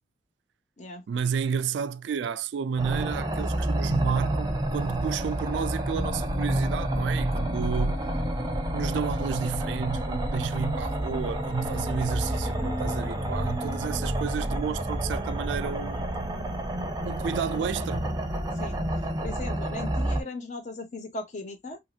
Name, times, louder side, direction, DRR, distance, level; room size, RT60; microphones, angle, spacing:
voice 1, 1.1-8.1 8.7-16.1 17.0-18.2, right 6 dB, 65° right, 0.3 m, -31 dB
sound 1, 2.8-20.2, right 1 dB, 20° right, 0.6 m, -29 dB
sound 2, 4.7-16.0, left 3 dB, 75° left, 0.8 m, -41 dB
voice 2, 19.2-21.8, left 2 dB, 40° left, 0.8 m, -38 dB
2.9 x 2.7 x 2.3 m
head